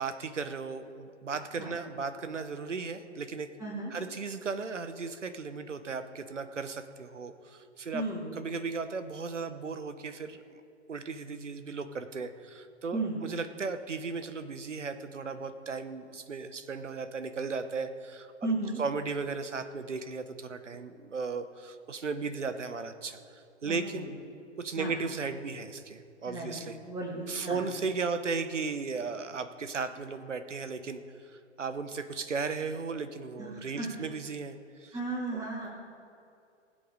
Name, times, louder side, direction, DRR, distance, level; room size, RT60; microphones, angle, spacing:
voice 1, 0.0-3.5 3.9-8.0 8.3-10.6 10.9-18.5 18.8-23.2 23.6-24.1 24.6-26.8 27.3-35.0 35.3-35.5, right 4 dB, 80° right, 11 dB, 1.0 m, -36 dB
voice 2, 3.6-3.9 7.9-8.3 12.9-13.2 18.4-18.8 23.7-24.1 24.8-24.9 26.2-26.5 26.8-27.6 33.4-33.5 33.8-33.9 34.9-35.7, right 2 dB, 10° right, -8 dB, 3.1 m, -34 dB
19.5 x 7.7 x 5.0 m, 2.5 s
figure-of-eight pair, 110°, 36 cm